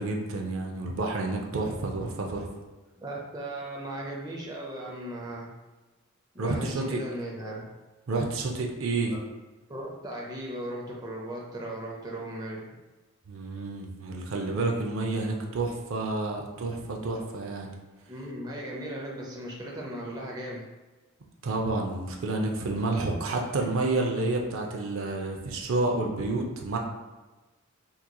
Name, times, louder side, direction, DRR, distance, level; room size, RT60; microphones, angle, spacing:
voice 1, 0.0-2.5 6.4-7.0 8.1-9.1 13.3-17.7 21.4-26.8, right 2 dB, 70° right, 1 dB, 0.5 m, -29 dB
voice 2, 3.0-5.5 6.3-7.6 9.0-9.2 9.7-12.7 18.1-20.6, right 1 dB, 20° right, -2 dB, 0.5 m, -37 dB
3.7 x 2.9 x 2.2 m, 1.2 s
head